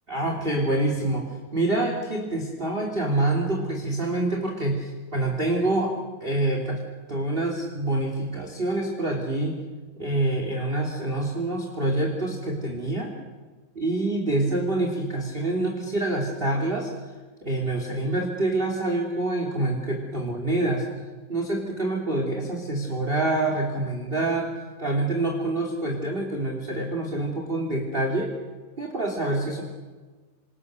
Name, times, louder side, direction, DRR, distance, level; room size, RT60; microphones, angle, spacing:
voice 1, 0.1-1.2 1.5-6.8 7.1-9.6 10.0-13.1 13.7-16.9 17.4-20.8 21.3-24.5 24.8-28.3 28.8-29.6, right 2 dB, 15° right, 1 dB, 2.8 m, -26 dB
28.5 x 26.5 x 6.8 m, 1.3 s
omnidirectional pair, 3.8 m